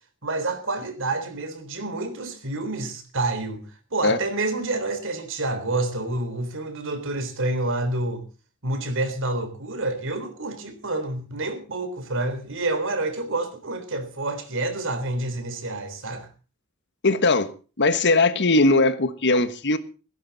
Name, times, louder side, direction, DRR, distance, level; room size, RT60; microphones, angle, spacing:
voice 1, 0.2-3.6 3.9-8.2 8.6-16.3, right 2 dB, 65° right, 3.7 m, -28 dB
voice 2, 17.0-17.5 17.8-19.8, left 2 dB, 55° left, 1.3 m, -19 dB
16.5 x 16.0 x 4.1 m
head